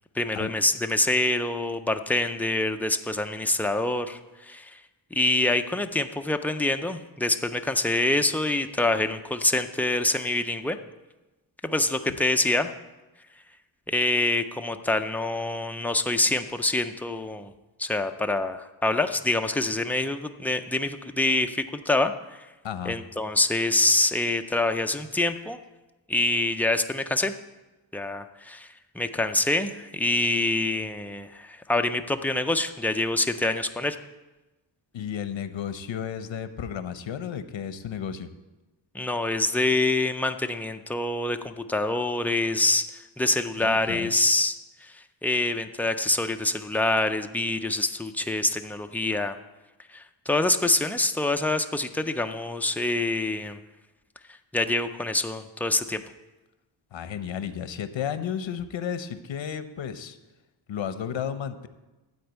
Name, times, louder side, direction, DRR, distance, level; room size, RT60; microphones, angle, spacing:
voice 1, 0.2-4.8 5.1-10.8 11.6-12.7 13.9-17.5 17.8-22.5 22.9-25.6 26.1-27.3 27.9-28.7 28.9-34.0 38.9-44.6 44.8-49.4 49.9-53.6 54.5-56.0, left 2 dB, 5° left, 6 dB, 0.3 m, -26 dB
voice 2, 22.6-22.9 34.9-38.3 43.6-44.1 56.9-60.2 60.7-61.7, left 8 dB, 80° left, 11 dB, 0.8 m, -33 dB
12.5 x 4.4 x 8.0 m, 1.1 s
wide cardioid pair, 170°, 45 cm